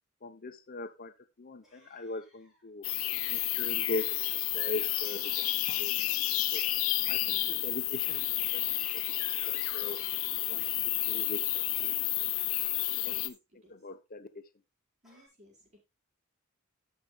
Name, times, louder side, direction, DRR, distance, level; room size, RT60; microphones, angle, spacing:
voice 1, 0.2-1.1 1.4-2.9 3.3-6.6 7.1-7.2 7.5-10.1 10.5-12.1 13.1-13.3 13.7-14.4, left 2 dB, 45° left, 0.8 m, -41 dB
sound 1, 1.6-2.7 4.5-5.5 6.7-7.4 8.3-9.0 9.6-10.6 12.5-13.3 15.0-15.3, equal, ahead, 5.1 m, -63 dB
sound 2, 2.8-13.3, left 16 dB, 75° left, 0.8 m, -31 dB
voice 2, 7.0-7.5 13.0-13.7 15.0-15.8, left 1 dB, 35° right, 4.7 m, -59 dB
18.0 x 6.4 x 2.3 m
head